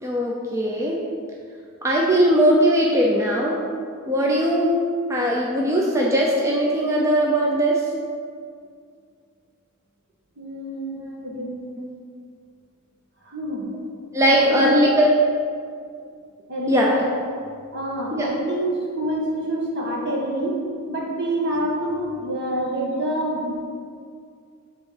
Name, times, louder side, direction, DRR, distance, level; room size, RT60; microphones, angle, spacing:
voice 1, 0.0-1.0 1.8-3.6 4.1-7.8 10.9-11.3 11.8-11.9 14.1-15.1 16.7-17.0 18.1-18.3, equal, 15° right, -3 dB, 0.6 m, -20 dB
voice 2, 10.4-11.5 13.2-13.7 14.3-14.8 16.5-17.0 17.7-20.6 20.9-23.5, right 1 dB, 55° right, -2 dB, 1.6 m, -27 dB
8.0 x 3.7 x 6.6 m, 2.2 s
head